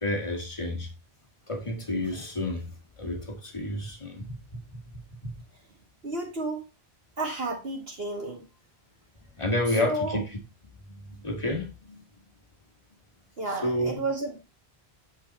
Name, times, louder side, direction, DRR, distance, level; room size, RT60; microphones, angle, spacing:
voice 1, 0.0-0.9 1.5-2.7 3.0-4.8 5.2-5.3 9.4-10.2 11.2-12.0 13.6-14.0, left 1 dB, 30° left, 1.9 m, -30 dB
voice 2, 6.0-6.6 7.2-8.4 9.8-10.2 13.4-14.5, right 2 dB, 65° right, 2.0 m, -32 dB
8.4 x 4.6 x 4.2 m
omnidirectional pair, 1.1 m